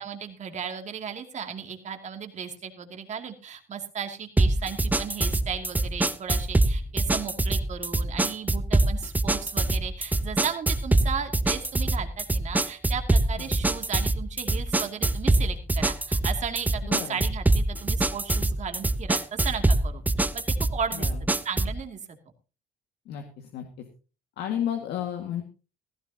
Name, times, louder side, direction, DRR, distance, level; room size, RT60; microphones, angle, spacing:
voice 1, 0.0-21.1 21.4-22.0, right 7 dB, 45° right, 5 dB, 2.6 m, -35 dB
sound 1, 4.4-21.8, right 2 dB, 10° right, 0.6 m, -24 dB
voice 2, 16.8-17.2 20.9-21.2 23.1-23.9 24.4-25.4, left 10 dB, 75° left, 4 dB, 2.0 m, -33 dB
16.5 x 14.5 x 2.9 m, 0.34 s
cardioid pair, 110°, 17 cm